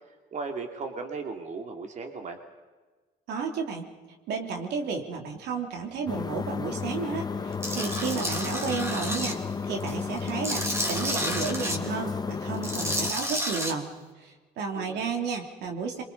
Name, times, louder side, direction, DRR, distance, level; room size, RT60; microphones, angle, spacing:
voice 1, 0.1-2.4 14.7-15.1, right 4 dB, 45° right, 4 dB, 2.6 m, -37 dB
voice 2, 3.3-3.9 4.3-13.9 14.2-16.0, right 5 dB, 80° right, 3 dB, 3.2 m, -32 dB
sound 1, 6.1-13.1, left 5 dB, 25° left, 1.2 m, -33 dB
Tools, 7.6-9.3 9.8-11.8 12.5-13.7, equal, 15° right, 3.0 m, -31 dB
27.5 x 24.0 x 5.5 m, 1.3 s
cardioid pair, 110°, 17 cm